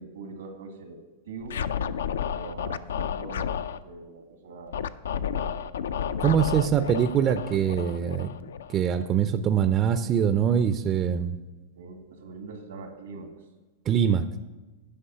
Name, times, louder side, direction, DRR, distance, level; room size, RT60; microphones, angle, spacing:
voice 1, 0.0-1.6 2.3-4.8 5.1-6.2 11.7-13.3, right 3 dB, 85° right, 4 dB, 1.8 m, -43 dB
Scratching (performance technique), 1.4-3.8 4.7-9.0, left 8 dB, 90° left, 0.4 m, -31 dB
voice 2, 6.2-8.3 8.7-11.3 13.9-14.3, right 8 dB, 30° right, 10 dB, 0.4 m, -23 dB
10.0 x 5.4 x 5.6 m, 1.2 s
hypercardioid pair, 130°, 0 cm